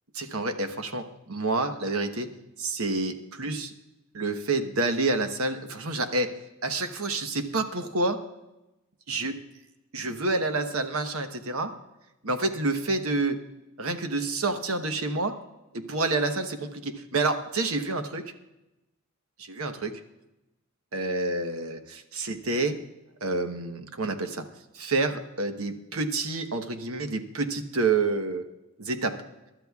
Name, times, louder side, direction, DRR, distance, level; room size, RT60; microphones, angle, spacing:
voice 1, 0.1-2.3 2.6-3.7 4.1-6.3 6.6-8.2 9.1-9.4 9.9-11.7 12.2-13.4 13.8-15.4 15.7-18.2 19.4-19.9 20.9-22.8 23.2-24.4 24.7-28.4 28.8-29.1, right 3 dB, 75° right, 7 dB, 1.1 m, -28 dB
23.5 x 12.0 x 2.4 m, 0.96 s
head